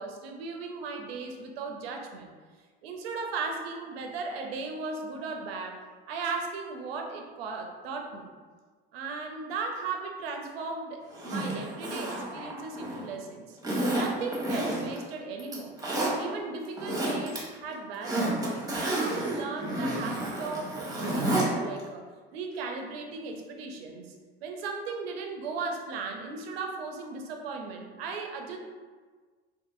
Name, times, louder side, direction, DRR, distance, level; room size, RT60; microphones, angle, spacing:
voice 1, 0.0-2.3 2.8-5.8 6.1-8.3 8.9-13.6 13.9-15.7 16.1-18.4 18.7-22.0 22.3-24.1 24.4-28.6, right 4 dB, 85° right, 2 dB, 0.5 m, -36 dB
Zipper (clothing), 11.1-13.1 13.6-15.0 15.4-16.1 16.6-17.4 17.7-21.5 21.8-21.9, right 1 dB, 10° right, 0.9 m, -30 dB
2.6 x 2.5 x 2.4 m, 1.4 s
hypercardioid pair, 70°, 29 cm